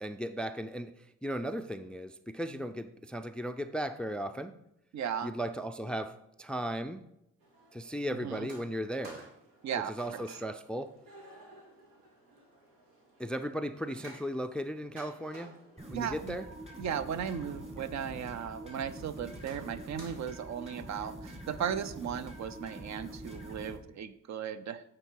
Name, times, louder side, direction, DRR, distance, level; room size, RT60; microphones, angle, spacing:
voice 1, 0.0-0.9 1.2-4.6 5.2-7.0 7.7-9.3 9.9-10.9 13.2-15.5 15.9-16.5, equal, 5° left, 11 dB, 0.3 m, -36 dB
voice 2, 4.9-5.3 8.2-8.5 9.6-10.2 15.9-16.4 16.8-24.8, right 8 dB, 55° right, 13 dB, 0.6 m, -36 dB
sound 1, 7.4-21.0, right 2 dB, 90° right, 1.5 m, -55 dB
sound 2, 15.8-23.8, right 1 dB, 20° right, 1.8 m, -45 dB
8.8 x 3.8 x 4.5 m, 0.81 s
supercardioid pair, 65°, 33 cm